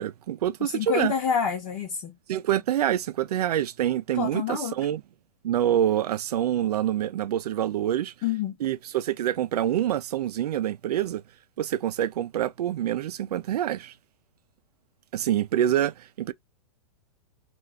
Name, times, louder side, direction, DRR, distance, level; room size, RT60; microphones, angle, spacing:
voice 1, 0.0-1.1 2.3-5.0 5.4-8.1 8.6-11.2 11.6-13.9 15.1-16.3, right 11 dB, 85° right, 0.4 m, -26 dB
voice 2, 0.6-2.2 4.1-4.7 8.2-8.5, left 7 dB, 30° left, 0.9 m, -27 dB
2.4 x 2.2 x 3.4 m
hypercardioid pair, 155°, 20 cm